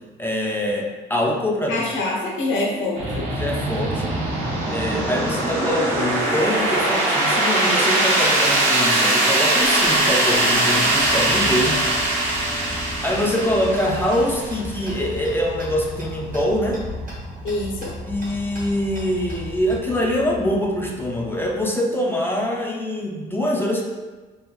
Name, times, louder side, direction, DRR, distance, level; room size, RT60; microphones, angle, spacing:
voice 1, 0.2-1.9 3.3-4.1 4.7-11.8 13.0-16.8 18.0-23.8, left 1 dB, 10° left, -1 dB, 0.4 m, -24 dB
voice 2, 1.7-3.3 17.4-17.9, left 2 dB, 80° left, -3 dB, 0.7 m, -25 dB
sound 1, 2.5-13.8, right 1 dB, 25° right, 0.6 m, -37 dB
sound 2, 2.9-21.6, right 1 dB, 80° right, 0.7 m, -23 dB
Tick-tock, 9.6-19.8, equal, 45° right, 1.0 m, -38 dB
3.2 x 2.2 x 2.2 m, 1.3 s
cardioid pair, 90°, 20 cm